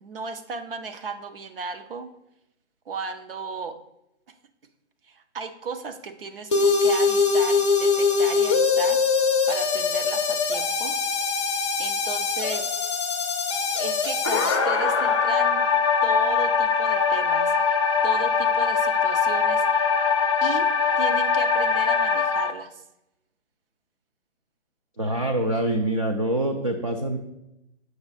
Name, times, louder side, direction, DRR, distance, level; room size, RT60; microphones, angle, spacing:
voice 1, 0.0-2.1 2.9-3.8 5.1-11.0 11.8-12.7 13.8-15.6 16.0-17.8 18.0-19.6 20.4-20.7 21.0-22.8, right 4 dB, 50° right, 8 dB, 0.9 m, -35 dB
sound 1, 6.5-22.5, left 5 dB, 25° left, 0.5 m, -22 dB
voice 2, 25.0-27.2, right 1 dB, 30° right, 4 dB, 0.4 m, -25 dB
7.8 x 5.9 x 4.1 m, 0.84 s
hypercardioid pair, 160°, 35 cm